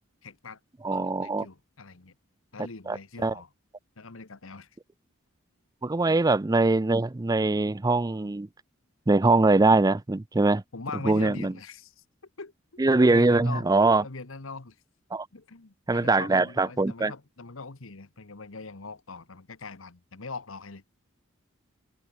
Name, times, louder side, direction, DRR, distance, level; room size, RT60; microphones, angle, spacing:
voice 1, 0.2-0.6 0.9-2.1 2.5-3.5 4.0-4.7 6.0-6.2 10.7-11.9 12.4-13.7 14.0-14.7 15.3-20.8, left 3 dB, 85° left, 1.4 m, -41 dB
voice 2, 0.8-1.5 2.9-3.4 5.8-8.5 9.1-10.6 11.0-11.5 12.8-14.0 15.1-15.3 15.9-17.1, right 3 dB, 20° right, 0.4 m, -22 dB
head